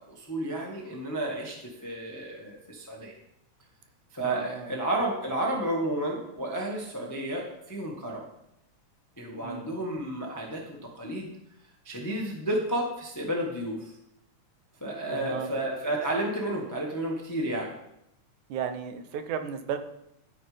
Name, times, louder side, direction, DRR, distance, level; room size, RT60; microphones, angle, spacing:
voice 1, 0.0-3.1 4.1-8.2 9.2-11.3 11.8-13.9 14.8-17.7, right 1 dB, 15° left, -1 dB, 0.6 m, -31 dB
voice 2, 4.2-4.7 9.4-9.7 15.0-15.6 18.5-19.8, right 7 dB, 80° right, 8 dB, 2.2 m, -34 dB
11.5 x 9.0 x 3.4 m, 0.82 s
omnidirectional pair, 3.4 m